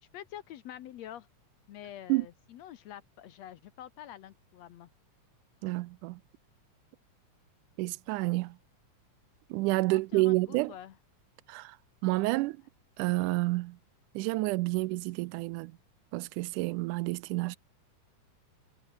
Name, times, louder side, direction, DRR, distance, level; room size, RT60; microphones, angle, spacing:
voice 1, 0.1-1.3 1.7-4.9 10.1-11.0, left 11 dB, 70° left, 1.9 m, -46 dB
voice 2, 5.6-6.2 7.8-8.6 9.5-10.7 11.5-11.8 12.0-12.6 13.0-13.8 14.2-15.8 16.1-17.6, right 21 dB, 85° right, 2.0 m, -29 dB
omnidirectional pair, 3.6 m